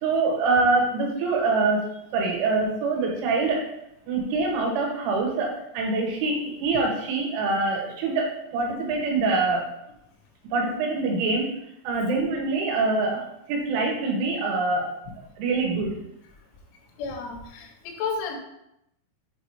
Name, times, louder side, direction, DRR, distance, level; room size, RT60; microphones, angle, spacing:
voice 1, 0.0-1.9 2.1-3.6 4.1-9.7 10.5-11.6 11.9-14.9 15.4-16.0, right 3 dB, 85° right, -1 dB, 3.7 m, -25 dB
voice 2, 17.0-18.4, left 5 dB, 90° left, 2 dB, 3.5 m, -32 dB
7.8 x 2.7 x 4.7 m, 0.82 s
omnidirectional pair, 5.4 m